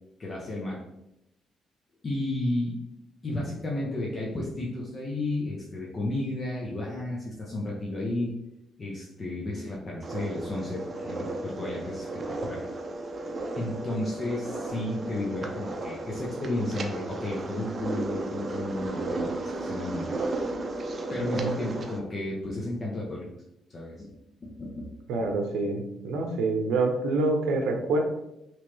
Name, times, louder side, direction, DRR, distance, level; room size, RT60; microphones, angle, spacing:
voice 1, 0.2-0.8 2.0-2.8 3.2-8.3 8.8-12.1 12.4-12.7 13.5-19.3 19.6-20.2 21.1-23.3 23.7-24.1 24.4-24.9, left 1 dB, 35° left, -3 dB, 0.7 m, -32 dB
sound 1, 10.0-22.0, right 2 dB, 40° right, 0.5 m, -34 dB
voice 2, 21.2-21.6 25.1-28.0, right 3 dB, 85° right, 3 dB, 0.7 m, -27 dB
3.0 x 3.0 x 3.1 m, 0.85 s
cardioid pair, 90°, 0 cm